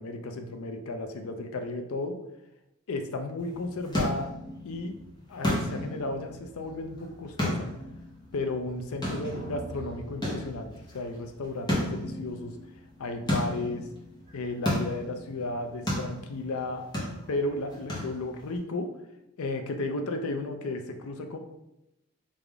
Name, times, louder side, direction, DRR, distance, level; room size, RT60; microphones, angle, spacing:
voice 1, 0.0-2.2 2.9-4.3 4.6-4.9 5.3-7.7 8.3-10.7 10.9-12.5 13.0-13.9 14.3-16.8 17.3-18.9 19.4-21.4, left 2 dB, 75° left, 5 dB, 0.5 m, -33 dB
sound 1, 3.4-18.6, equal, 20° left, 0.8 m, -34 dB
3.4 x 2.5 x 3.4 m, 0.87 s
head